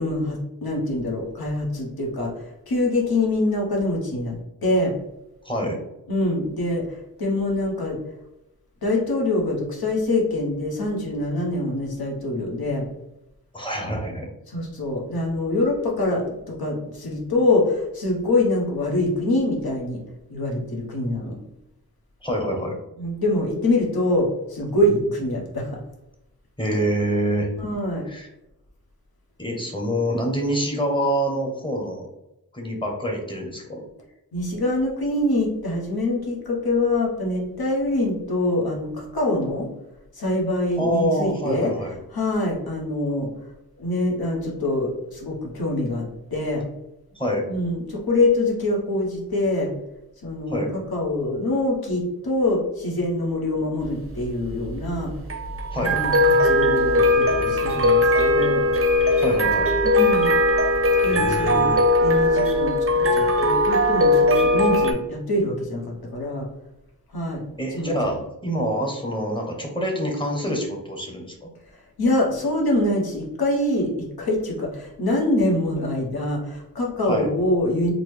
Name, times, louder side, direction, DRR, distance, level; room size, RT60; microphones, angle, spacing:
voice 1, 0.0-2.3 2.7-4.9 6.1-8.0 8.8-12.9 14.5-20.0 20.3-21.3 23.0-25.8 27.6-28.0 34.3-39.7 40.1-41.7 42.1-43.3 43.8-46.6 47.5-49.7 50.2-50.6 50.9-55.1 55.8-58.6 59.8-60.4 61.0-61.7 62.0-66.5 67.1-67.4 67.7-68.1 72.0-77.9, left 1 dB, 75° left, -2 dB, 1.1 m, -24 dB
voice 2, 5.4-5.8 13.5-14.3 22.2-22.7 26.6-27.5 28.0-28.3 29.4-32.1 32.5-33.8 40.8-41.9 47.2-47.4 50.5-50.7 55.7-56.0 59.2-59.7 61.1-61.8 67.6-71.5 77.1-77.3, equal, 15° left, 1 dB, 0.8 m, -26 dB
sound 1, 53.9-64.9, left 1 dB, 35° right, 0.5 m, -19 dB
3.9 x 2.1 x 3.2 m, 0.90 s
wide cardioid pair, 70°, 37 cm